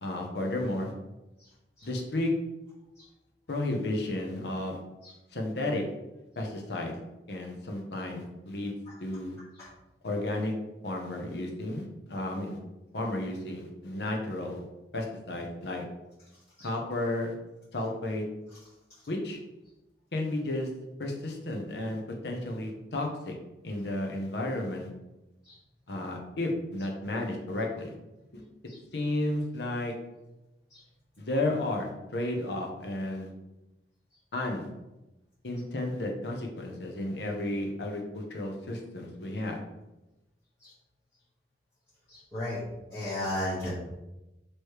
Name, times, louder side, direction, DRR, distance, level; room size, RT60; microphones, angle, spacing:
voice 1, 0.0-0.9 1.8-2.3 3.5-4.8 5.3-5.8 6.4-6.9 7.3-8.7 9.0-9.4 10.0-10.5 10.8-12.6 12.9-14.7 14.9-15.8 16.6-17.3 17.7-18.2 19.1-19.4 20.1-20.7 21.0-23.3 23.6-24.9 25.9-27.9 28.3-28.4 28.9-29.9 31.2-33.3 34.3-34.7 35.4-39.6, left 1 dB, 75° left, 1 dB, 0.8 m, -32 dB
voice 2, 42.1-42.6 42.9-43.7, left 1 dB, 20° left, -12 dB, 1.3 m, -34 dB
3.2 x 3.1 x 4.7 m, 0.97 s
head